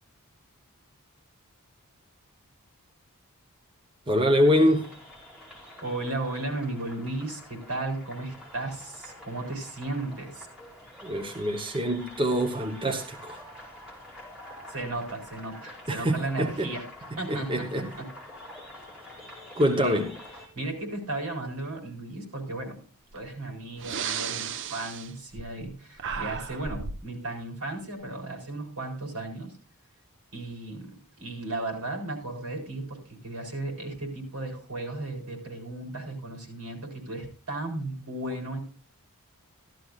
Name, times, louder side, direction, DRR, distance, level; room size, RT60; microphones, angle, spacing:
voice 1, 4.1-4.9 11.0-13.4 15.9-16.7 17.1-17.9 19.5-20.1, equal, 25° right, 1.0 m, -25 dB
sound 1, 4.4-20.5, left 1 dB, 5° right, 4.2 m, -47 dB
voice 2, 5.8-10.5 14.7-16.8 17.2-18.1 19.8-20.0 20.5-22.8 23.1-29.5 30.3-38.6, right 2 dB, 80° right, 4.3 m, -35 dB
Breathing, 23.1-23.3 23.7-25.7 26.0-27.1, right 7 dB, 55° right, 0.6 m, -34 dB
14.5 x 13.0 x 2.4 m
head